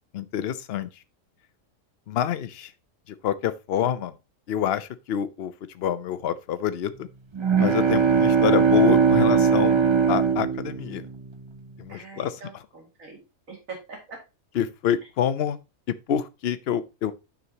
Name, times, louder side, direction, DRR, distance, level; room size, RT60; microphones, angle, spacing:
voice 1, 0.1-0.9 2.1-2.7 3.2-4.1 4.5-7.1 7.6-9.8 10.1-11.0 11.8-12.3 14.6-15.6 15.9-17.1, left 9 dB, 55° left, 0.8 m, -27 dB
sound 1, 7.3-11.4, right 6 dB, 40° right, 0.4 m, -20 dB
voice 2, 11.9-13.2 13.5-14.2, right 4 dB, 80° right, 2.7 m, -42 dB
9.6 x 6.4 x 2.9 m
omnidirectional pair, 1.4 m